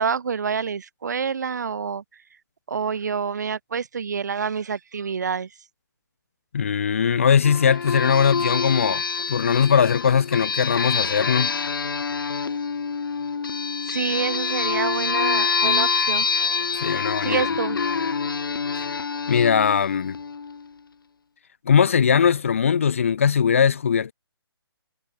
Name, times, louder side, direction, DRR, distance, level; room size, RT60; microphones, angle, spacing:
voice 1, 0.0-2.0 2.7-5.5 13.9-16.3 17.2-17.8, right 6 dB, 45° right, 2.6 m, -27 dB
voice 2, 6.5-9.0 9.3-11.5 16.8-17.5 18.7-18.9 19.3-20.2 21.7-24.1, left 7 dB, 30° left, 1.1 m, -20 dB
sound 1, 7.4-20.6, left 5 dB, 55° left, 2.7 m, -26 dB
hypercardioid pair, 180°, 13 cm